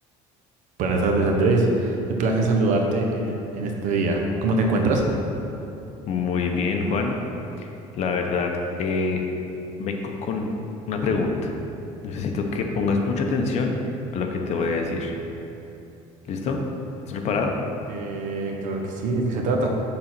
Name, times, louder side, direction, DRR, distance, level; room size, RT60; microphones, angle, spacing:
voice 1, 0.8-5.0 17.9-19.7, right 2 dB, 70° right, 2 dB, 1.1 m, -23 dB
voice 2, 6.1-7.2 7.6-7.7 7.9-8.5 8.8-9.2 9.8-10.5 10.9-11.5 12.0-13.7 14.1-15.1 16.3-16.6 17.1-17.5, left 4 dB, 55° left, 3 dB, 0.9 m, -25 dB
6.8 x 4.0 x 6.0 m, 2.8 s
cardioid pair, 110°, 14 cm